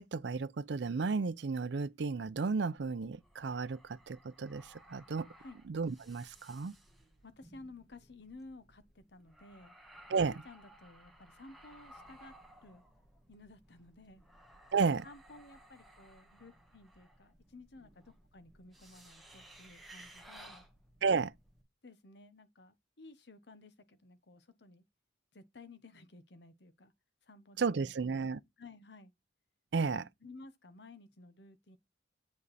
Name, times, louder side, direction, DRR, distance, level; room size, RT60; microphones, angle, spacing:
voice 1, 0.0-5.3 5.7-6.7 10.1-10.4 14.7-15.1 21.0-21.3 27.6-28.4 29.7-30.0, right 4 dB, 70° right, 0.5 m, -33 dB
sound 1, 2.8-21.6, right 1 dB, ahead, 1.5 m, -59 dB
voice 2, 7.2-9.7 10.2-12.3 12.6-12.8 13.3-14.2 15.0-20.7 21.8-24.8 25.3-26.9 27.3-27.9 28.6-29.1 29.8-31.8, left 2 dB, 65° left, 1.0 m, -55 dB
8.1 x 5.2 x 4.1 m
head